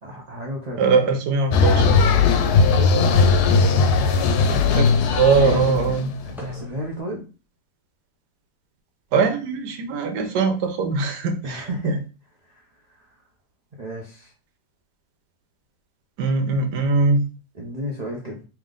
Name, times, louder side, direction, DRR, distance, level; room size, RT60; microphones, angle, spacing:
voice 1, 0.0-1.0 2.5-3.4 5.4-6.0 6.2-7.3 11.4-12.0 12.5-13.1 13.8-14.3 17.5-18.4, equal, 50° right, -1 dB, 0.4 m, -33 dB
voice 2, 0.8-2.2 4.5-4.9 5.2-6.1 9.1-11.7 16.2-17.3, right 4 dB, 85° right, 6 dB, 1.3 m, -21 dB
sound 1, 1.5-6.5, left 4 dB, 80° left, 1.1 m, -18 dB
sound 2, 2.2-7.0, left 1 dB, ahead, 0.7 m, -38 dB
3.4 x 3.0 x 3.7 m, 0.33 s
omnidirectional pair, 1.7 m